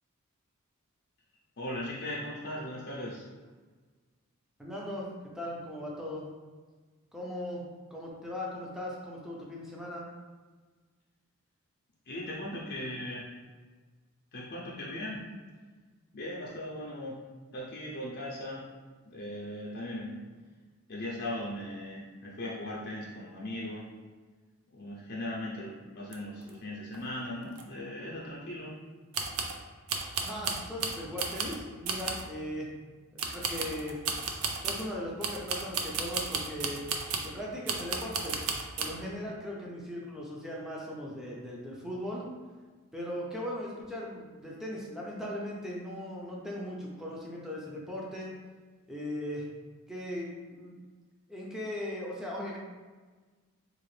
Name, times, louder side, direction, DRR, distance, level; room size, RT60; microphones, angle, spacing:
voice 1, 1.6-3.2 12.1-13.2 14.3-15.2 16.1-17.1 17.5-18.6 19.0-20.2 20.9-23.9 24.7-28.8, left 1 dB, 50° left, -5 dB, 0.6 m, -38 dB
voice 2, 4.6-5.1 5.3-6.3 7.1-7.6 7.9-10.1 30.2-32.7 33.1-34.0 34.6-36.8 37.2-38.4 38.8-42.3 42.9-48.3 48.9-49.5 49.9-50.8 51.3-52.6, left 1 dB, ahead, -4 dB, 0.6 m, -38 dB
sound 1, 26.1-26.2 26.4-26.5 26.9-27.0 27.5-27.6 29.1-29.6 29.9-31.6 31.9-32.3 33.2-34.9 35.2-37.3 37.7-38.9, right 5 dB, 80° right, 0.4 m, -34 dB
3.8 x 2.5 x 3.2 m, 1.4 s
head